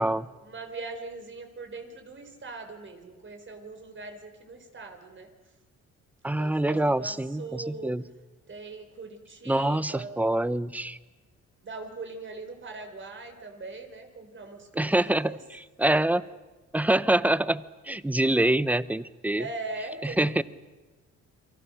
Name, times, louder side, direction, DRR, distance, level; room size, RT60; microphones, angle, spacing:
voice 1, 0.4-5.3 6.4-7.9 8.5-10.1 11.6-15.4 19.4-20.4, right 3 dB, 40° right, 5 dB, 4.3 m, -41 dB
voice 2, 6.2-8.0 9.5-11.0 14.8-16.2 16.7-19.5 20.0-20.4, right 1 dB, 5° right, 17 dB, 0.8 m, -25 dB
28.5 x 23.0 x 6.6 m, 1.2 s
cardioid pair, 90°, 30 cm